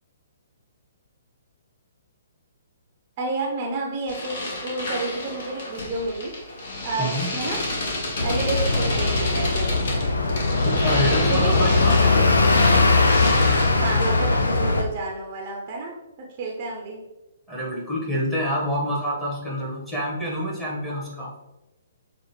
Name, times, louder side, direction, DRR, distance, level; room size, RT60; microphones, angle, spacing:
voice 1, 3.2-6.3 6.8-7.6 8.2-9.9 11.3-11.6 13.8-17.0, right 3 dB, 40° right, -1 dB, 0.8 m, -30 dB
sound 1, 4.1-14.3, left 2 dB, 55° left, 1.2 m, -30 dB
sound 2, 8.2-14.8, left 3 dB, 80° left, 0.6 m, -20 dB
voice 2, 10.6-12.5 17.5-21.3, equal, 10° left, -6 dB, 1.3 m, -27 dB
6.4 x 2.5 x 3.2 m, 1.0 s
figure-of-eight pair, 130°, 0 cm